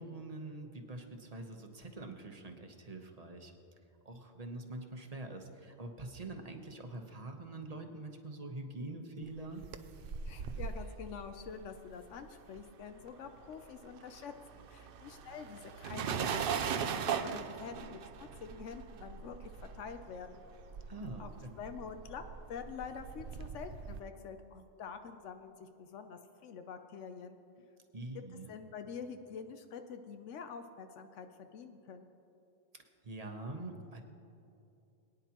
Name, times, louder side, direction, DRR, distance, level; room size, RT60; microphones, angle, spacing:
voice 1, 0.0-3.5 4.0-9.6 20.9-21.6 27.9-28.5 32.7-34.0, right 2 dB, 35° right, 4 dB, 1.0 m, -45 dB
sound 1, 9.4-13.0 13.3-24.0, right 7 dB, 60° right, 0.7 m, -40 dB
voice 2, 10.2-16.6 16.9-20.4 21.2-21.3 21.6-27.4 28.5-32.1, left 6 dB, 85° left, 7 dB, 1.0 m, -46 dB
21.5 x 9.9 x 2.9 m, 2.7 s
omnidirectional pair, 1.2 m